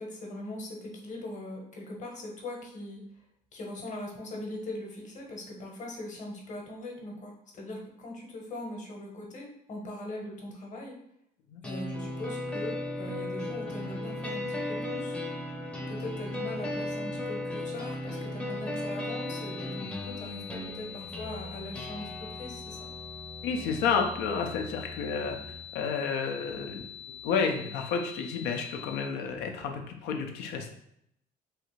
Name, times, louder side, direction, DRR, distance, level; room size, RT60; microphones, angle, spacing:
voice 1, 0.0-3.0 3.5-11.0 11.6-15.2 15.8-22.9, left 1 dB, 45° left, 0 dB, 1.0 m, -40 dB
sound 1, 11.6-25.6, left 1 dB, 10° left, 0.6 m, -37 dB
sound 2, 19.1-29.1, left 9 dB, 50° right, 0.6 m, -45 dB
voice 2, 23.4-30.7, left 5 dB, 85° left, 4 dB, 0.5 m, -31 dB
3.2 x 2.4 x 3.1 m, 0.75 s
cardioid pair, 110°, 17 cm